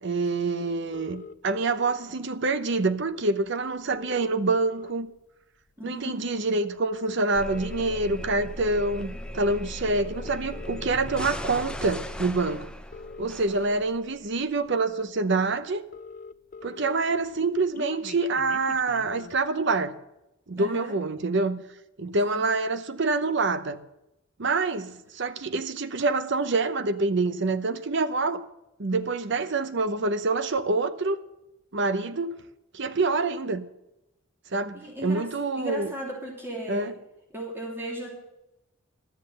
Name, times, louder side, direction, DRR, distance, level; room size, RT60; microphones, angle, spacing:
voice 1, 0.0-5.1 5.8-12.7 13.2-15.8 16.6-20.0 20.5-21.6 22.0-23.8 24.4-28.4 28.8-31.2 31.7-32.3 32.7-33.6 34.5-35.9 36.7-36.9, right 3 dB, 60° right, 0.8 m, -26 dB
sound 1, 0.9-1.9 3.1-3.2 3.5-3.6 3.8-5.2 5.7-5.9 6.8-7.9 8.6-8.9 9.8-10.9 12.2-12.3 12.7-13.9 14.6-14.7 15.0-15.1 15.3-15.4 15.6-16.9 17.2-19.4, left 4 dB, 40° left, 0.4 m, -43 dB
voice 2, 5.8-6.2 13.5-13.8 20.6-20.9 22.3-22.4 34.7-35.2 35.5-36.9 37.3-38.1, equal, 10° right, 2.9 m, -36 dB
sound 2, 7.3-14.2, left 1 dB, 5° left, 0.7 m, -38 dB
12.0 x 7.5 x 7.8 m
head